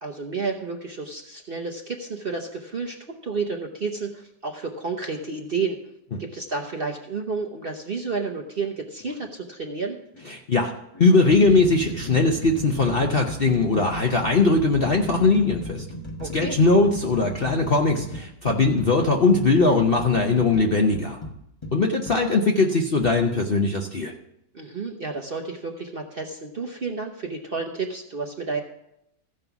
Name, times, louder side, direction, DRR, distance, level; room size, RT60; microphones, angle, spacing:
voice 1, 0.0-3.0 3.2-5.8 6.2-10.0 16.2-16.6 24.5-28.6, right 4 dB, 45° right, 2 dB, 0.8 m, -31 dB
sound 1, 9.0-9.2 10.1-10.3 10.9-22.2 23.0-23.2, equal, 20° left, 1.1 m, -36 dB
voice 2, 10.3-10.7 11.0-15.8 16.3-21.2 21.7-24.1, left 3 dB, 45° left, 2 dB, 0.8 m, -20 dB
15.0 x 5.4 x 5.9 m, 0.79 s
omnidirectional pair, 1.9 m